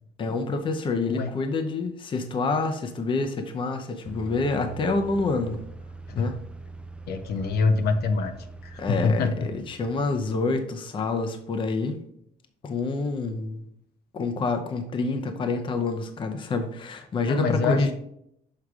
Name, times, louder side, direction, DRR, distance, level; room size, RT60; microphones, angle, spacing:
voice 1, 0.2-5.6 6.1-6.4 8.8-12.0 12.6-13.6 14.1-17.9, left 3 dB, 30° left, 0.6 m, -27 dB
sound 1, 4.0-10.6, right 3 dB, 5° right, 0.3 m, -43 dB
voice 2, 7.1-8.3 8.6-9.5 17.3-17.9, left 4 dB, 70° left, 0.8 m, -25 dB
6.5 x 4.7 x 3.6 m
cardioid pair, 165°, 17 cm